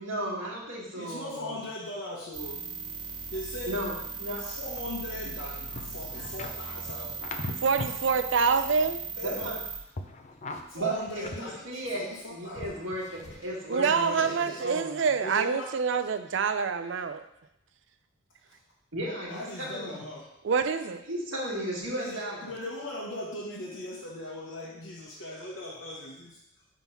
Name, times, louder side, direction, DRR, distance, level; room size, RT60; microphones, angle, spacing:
voice 1, 0.0-1.5 3.7-4.5 6.2-6.3 9.2-9.6 10.7-15.0 18.9-20.0 21.1-22.4, right 1 dB, 80° right, -3 dB, 1.7 m, -35 dB
voice 2, 0.9-2.6 3.3-3.8 4.4-7.3 9.2-9.6 10.7-12.9 13.3-13.4 13.9-14.7 15.2-15.8 18.5-18.6 19.3-20.3 21.9-26.4, left 1 dB, 75° left, -5 dB, 1.1 m, -39 dB
sound 1, 2.3-9.8, right 5 dB, 20° right, 0.8 m, -38 dB
sound 2, 4.8-8.1 8.4-9.6 9.9-12.2 12.6-13.6 14.1-14.3, left 2 dB, 35° left, 0.5 m, -41 dB
voice 3, 7.6-9.0 13.7-17.2 20.4-21.0, right 5 dB, 65° right, 9 dB, 0.4 m, -26 dB
6.0 x 3.7 x 5.5 m, 0.82 s
head